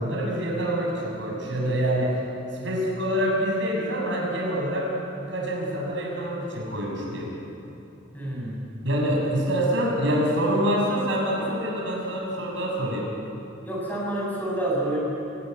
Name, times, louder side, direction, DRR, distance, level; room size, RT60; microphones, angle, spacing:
voice 1, 0.0-2.2 2.5-4.9 5.3-7.3 8.8-13.1, equal, 75° right, -1 dB, 7.1 m, -26 dB
voice 2, 8.1-8.7 13.6-15.0, right 1 dB, 10° left, -4 dB, 7.3 m, -28 dB
27.5 x 17.0 x 9.3 m, 2.7 s
head